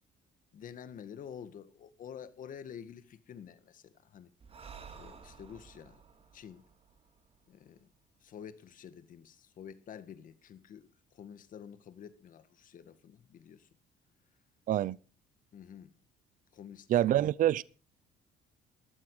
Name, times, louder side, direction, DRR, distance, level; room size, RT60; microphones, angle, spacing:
voice 1, 0.5-4.3 5.0-6.0 6.3-6.7 7.5-7.9 8.2-13.7 15.5-15.9 16.5-16.9, left 8 dB, 50° left, 1.7 m, -49 dB
Breathing, 4.4-7.9, right 6 dB, 35° right, 2.5 m, -53 dB
voice 2, 16.9-17.6, right 12 dB, 50° right, 0.6 m, -26 dB
14.5 x 12.5 x 4.8 m
cardioid pair, 110°, 17 cm